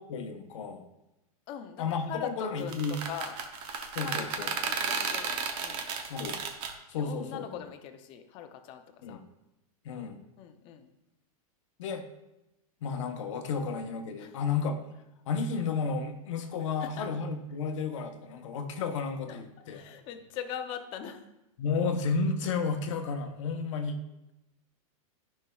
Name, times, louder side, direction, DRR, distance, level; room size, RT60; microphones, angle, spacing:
voice 1, 0.1-0.8 1.8-2.9 3.9-4.5 6.1-6.4 6.9-7.5 9.0-9.2 9.8-10.2 11.8-12.0 12.8-14.8 15.3-19.8 21.6-24.0, left 5 dB, 55° left, 6 dB, 0.9 m, -32 dB
voice 2, 1.5-3.4 4.0-5.9 7.0-9.2 10.4-10.9 14.2-14.4 16.8-17.1 19.3-19.4 19.7-21.3 23.4-23.6, left 9 dB, 25° left, 6 dB, 0.6 m, -42 dB
sound 1, 2.6-6.7, right 5 dB, 30° right, 0.6 m, -33 dB
13.0 x 5.6 x 2.3 m, 0.92 s
supercardioid pair, 165°, 18 cm